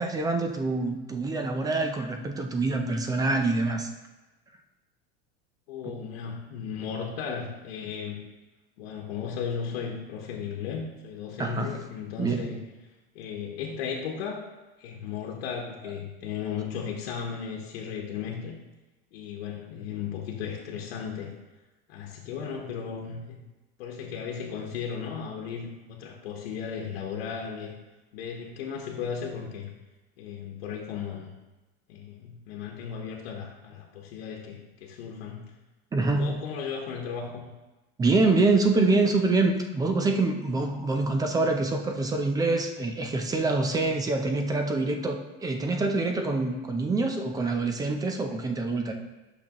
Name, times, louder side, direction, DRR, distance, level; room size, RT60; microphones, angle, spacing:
voice 1, 0.0-3.9 11.4-11.7 12.2-12.5 35.9-36.3 38.0-48.9, right 3 dB, 10° right, 5 dB, 0.5 m, -25 dB
voice 2, 5.7-8.2 8.8-12.6 12.8-14.4 14.8-18.6 19.1-21.3 21.9-23.4 23.8-27.7 28.1-29.7 30.2-31.3 31.9-35.4 36.1-37.5, left 7 dB, 80° left, -1 dB, 1.2 m, -35 dB
8.4 x 6.0 x 3.0 m, 1.1 s
supercardioid pair, 150°, 30 cm